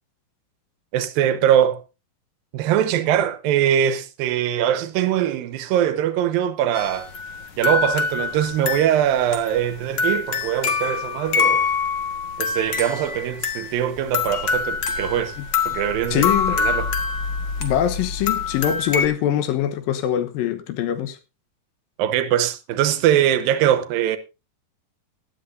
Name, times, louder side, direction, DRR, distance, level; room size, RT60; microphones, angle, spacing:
voice 1, 0.9-1.8 2.5-7.1 7.6-11.7 12.4-15.4 15.7-16.9 22.0-24.2, right 10 dB, 80° right, 2.6 m, -22 dB
sound 1, 6.7-19.1, left 5 dB, 55° left, 1.2 m, -25 dB
voice 2, 16.1-16.6 17.6-21.2, left 10 dB, 75° left, 2.8 m, -23 dB
17.5 x 12.0 x 2.7 m
omnidirectional pair, 4.3 m